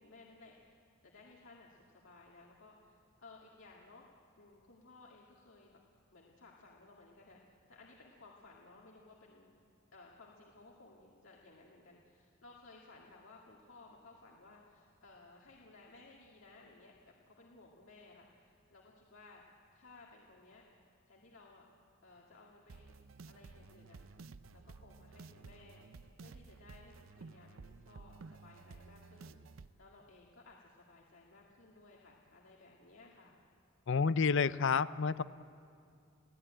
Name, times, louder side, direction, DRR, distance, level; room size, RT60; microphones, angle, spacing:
voice 1, 0.0-4.1 4.4-5.7 6.1-7.4 7.7-9.5 9.9-19.5 19.7-20.6 21.1-21.7 22.0-23.0 23.3-24.2 24.5-25.8 26.2-33.4, left 3 dB, 80° left, -3 dB, 2.2 m, -59 dB
sound 1, 22.7-29.7, right 4 dB, 90° right, 0.6 m, -54 dB
voice 2, 33.9-35.2, left 5 dB, 65° left, 16 dB, 0.6 m, -29 dB
29.0 x 17.0 x 8.9 m, 2.4 s
head